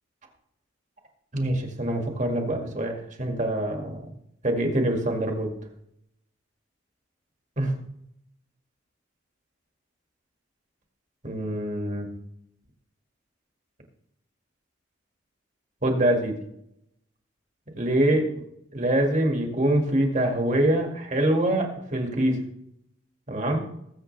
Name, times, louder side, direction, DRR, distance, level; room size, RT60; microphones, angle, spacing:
voice 1, 1.3-4.0 4.4-5.5 7.6-7.7 11.2-12.1 15.8-16.4 17.8-18.3 18.7-22.4 23.3-23.6, right 1 dB, 35° right, 2 dB, 2.0 m, -24 dB
20.0 x 8.0 x 3.3 m, 0.77 s
head